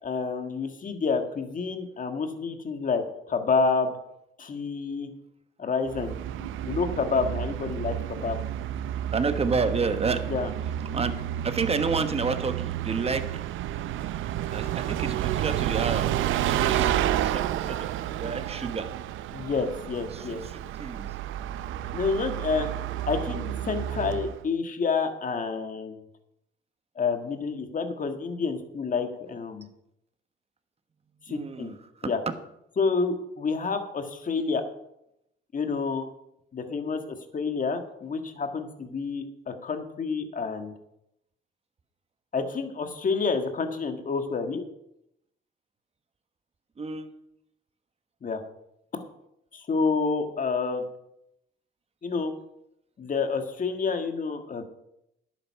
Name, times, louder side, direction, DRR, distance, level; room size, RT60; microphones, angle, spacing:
voice 1, 0.0-3.9 4.4-5.1 5.6-8.4 10.3-10.5 16.8-16.9 19.3-20.4 21.9-22.7 23.1-26.0 26.9-29.7 31.3-31.7 32.0-32.2 32.8-34.6 35.5-36.1 36.5-40.7 42.3-44.6 48.2-48.4 49.5-50.8 52.0-52.3 53.0-54.6, left 4 dB, 40° left, 7 dB, 1.7 m, -29 dB
Bus, 5.9-24.4, right 12 dB, 80° right, 0.6 m, -30 dB
voice 2, 9.1-10.2 10.9-11.1 11.4-13.2 14.5-16.9 17.2-18.9 20.1-20.2 20.8-21.1 31.3-31.8 46.8-47.1, right 4 dB, 30° right, 9 dB, 1.2 m, -29 dB
11.0 x 9.1 x 5.8 m, 0.81 s
cardioid pair, 90°, 20 cm